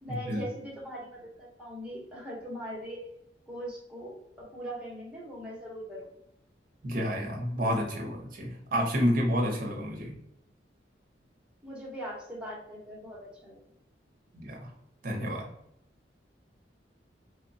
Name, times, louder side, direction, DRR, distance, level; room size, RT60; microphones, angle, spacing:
voice 1, 0.0-3.0 3.5-6.1 11.6-13.6, equal, 5° right, -5 dB, 0.9 m, -40 dB
voice 2, 6.8-10.1 14.3-14.6 15.0-15.4, equal, 50° right, 1 dB, 0.7 m, -29 dB
2.9 x 2.1 x 2.6 m, 0.78 s
head